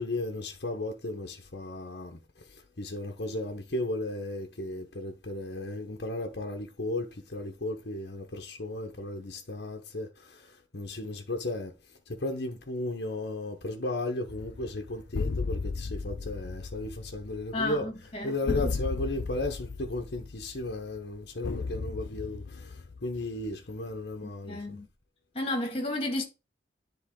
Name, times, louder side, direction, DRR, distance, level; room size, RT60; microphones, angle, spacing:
voice 1, 0.0-2.2 2.5-11.7 12.1-17.9 18.2-24.8, left 2 dB, 65° left, 1.0 m, -35 dB
sound 1, 14.3-23.7, left 4 dB, 85° left, 0.5 m, -36 dB
voice 2, 17.5-18.7 24.4-24.9 25.3-26.2, left 2 dB, 30° left, 1.7 m, -32 dB
10.0 x 3.9 x 3.7 m
head